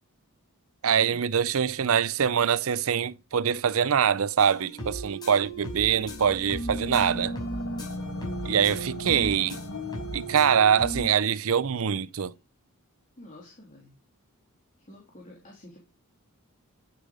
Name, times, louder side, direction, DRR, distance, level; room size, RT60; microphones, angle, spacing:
voice 1, 0.8-7.4 8.4-9.6 10.1-12.3, right 7 dB, 65° right, 0.5 m, -24 dB
sound 1, 4.4-11.1, right 2 dB, 20° left, 6.1 m, -36 dB
sound 2, 5.4-11.0, left 2 dB, 75° left, 2.3 m, -39 dB
voice 2, 13.2-13.9 14.9-15.8, left 1 dB, 35° left, 3.3 m, -49 dB
10.0 x 8.4 x 5.2 m
head